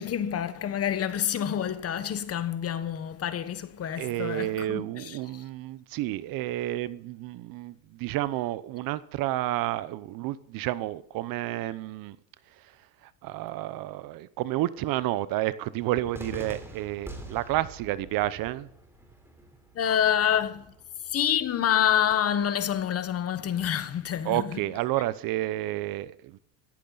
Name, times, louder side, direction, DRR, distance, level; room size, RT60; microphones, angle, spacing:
voice 1, 0.0-5.2 19.7-20.7 21.1-24.6, left 9 dB, 35° left, 1.3 m, -27 dB
voice 2, 4.0-12.2 12.5-18.7 24.2-26.4, right 15 dB, 50° right, 0.8 m, -30 dB
Cheering / Fireworks, 16.1-22.1, right 1 dB, 5° right, 3.5 m, -45 dB
16.5 x 14.5 x 4.1 m
supercardioid pair, 125°, 44 cm